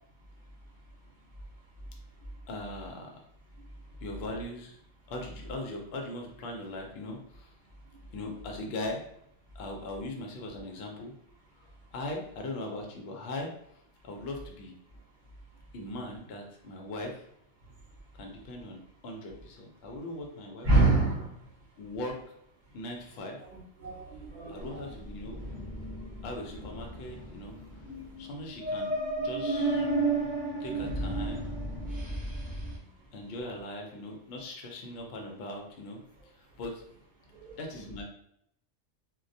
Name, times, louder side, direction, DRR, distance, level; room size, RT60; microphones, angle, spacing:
voice 1, 2.5-3.2 4.0-4.8 5.1-7.5 8.1-9.0 9.5-11.1 11.9-14.7 15.7-17.2 18.1-20.9 21.8-22.2 22.7-23.4 24.5-25.3 26.2-27.6 28.2-28.9 29.2-29.9 30.6-31.5 33.1-36.8 37.6-38.0, left 1 dB, 65° left, 1 dB, 0.7 m, -40 dB
voice 2, 20.6-21.3 23.5-24.7 37.3-37.5, right 2 dB, 45° right, -4 dB, 0.8 m, -26 dB
sound 1, 24.6-32.8, right 2 dB, 15° right, 0.3 m, -33 dB
2.2 x 2.1 x 2.6 m, 0.73 s
omnidirectional pair, 1.3 m